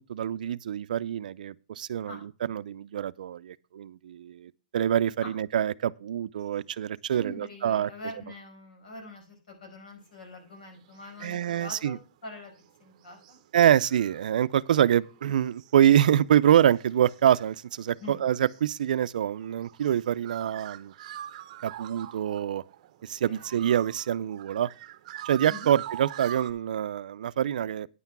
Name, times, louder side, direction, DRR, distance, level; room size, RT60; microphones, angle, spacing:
voice 1, 0.1-7.9 11.2-12.0 13.5-20.9 21.6-22.6 23.0-24.7 25.2-27.9, right 10 dB, 75° right, 0.4 m, -25 dB
voice 2, 7.1-12.0 12.2-12.5 12.8-13.4 18.0-18.2 23.3-23.7 25.5-25.7, left 1 dB, 80° left, 5.3 m, -44 dB
sound 1, 10.5-12.0 12.3-26.5, right 12 dB, 50° right, 0.7 m, -45 dB
9.7 x 5.8 x 6.0 m
hypercardioid pair, 155°, 4 cm